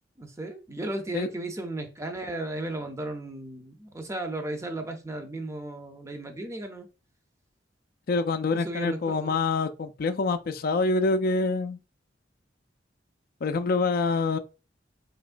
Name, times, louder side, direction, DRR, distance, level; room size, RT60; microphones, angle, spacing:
voice 1, 0.2-6.9 8.5-9.4, right 1 dB, 15° right, 0.6 m, -35 dB
voice 2, 8.1-11.8 13.4-14.4, left 3 dB, 55° left, 0.4 m, -26 dB
4.5 x 3.0 x 2.4 m
head